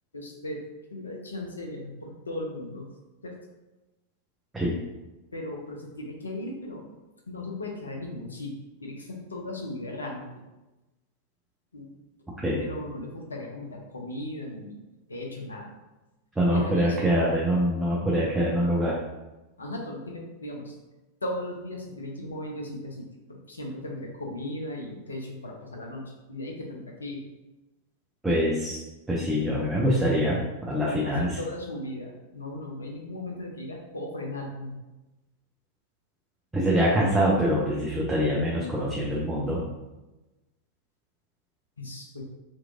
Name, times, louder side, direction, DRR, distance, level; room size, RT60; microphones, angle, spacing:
voice 1, 0.1-0.6 0.9-2.9 3.2-3.4 5.3-6.9 7.3-10.4 11.7-11.9 12.6-14.8 15.1-15.7 16.5-17.0 19.6-20.7 21.2-27.2 31.0-34.7 41.8-42.2, left 1 dB, 75° left, 0 dB, 0.7 m, -37 dB
voice 2, 16.4-19.0 28.2-28.8 29.1-31.4 36.5-39.6, equal, 10° right, -5 dB, 0.7 m, -24 dB
3.6 x 3.0 x 2.5 m, 1.1 s
figure-of-eight pair, 90°, 0 cm